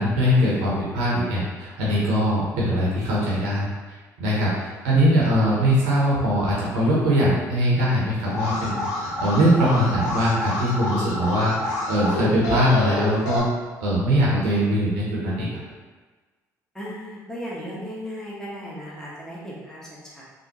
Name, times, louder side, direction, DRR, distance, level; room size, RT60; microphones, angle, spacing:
voice 1, 0.0-3.7 4.2-13.4 13.8-15.5, equal, 70° right, -6 dB, 0.8 m, -21 dB
Alarm, 8.3-13.4, left 1 dB, 75° left, 0.5 m, -28 dB
voice 2, 16.7-20.2, equal, 5° left, -7 dB, 1.1 m, -36 dB
3.4 x 2.1 x 2.9 m, 1.3 s
figure-of-eight pair, 50°, 9 cm